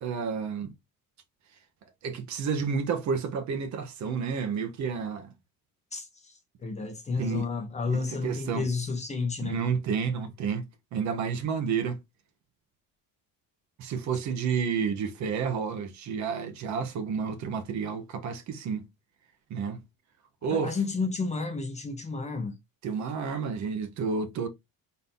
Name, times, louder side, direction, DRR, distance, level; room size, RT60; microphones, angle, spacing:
voice 1, 0.0-0.7 2.0-5.3 6.8-6.9 7.2-7.5 7.9-8.7 9.4-10.6 10.9-12.0 13.8-18.9 19.5-19.8 20.4-20.8 22.8-24.5, right 6 dB, 50° right, 0.9 m, -30 dB
voice 2, 5.9-9.6 20.5-22.6, left 4 dB, 20° left, 0.6 m, -31 dB
4.1 x 2.7 x 3.5 m
cardioid pair, 180°, 35 cm